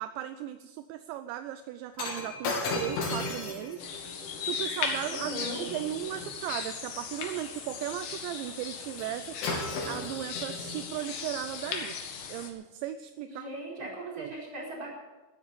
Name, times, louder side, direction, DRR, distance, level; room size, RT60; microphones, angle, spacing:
voice 1, 0.0-3.9 4.4-9.4 9.9-12.0 12.3-13.5 14.2-14.3, right 12 dB, 85° right, 10 dB, 2.7 m, -37 dB
Shatter, 2.0-6.3 9.0-9.2 9.4-10.9 11.7-11.8, left 3 dB, 75° left, 5.4 m, -36 dB
sound 1, 3.8-12.5, left 5 dB, 60° left, 2.9 m, -37 dB
voice 2, 5.1-5.6 13.3-14.9, right 1 dB, 20° right, -3 dB, 4.7 m, -39 dB
14.5 x 12.5 x 6.7 m, 1.2 s
omnidirectional pair, 5.6 m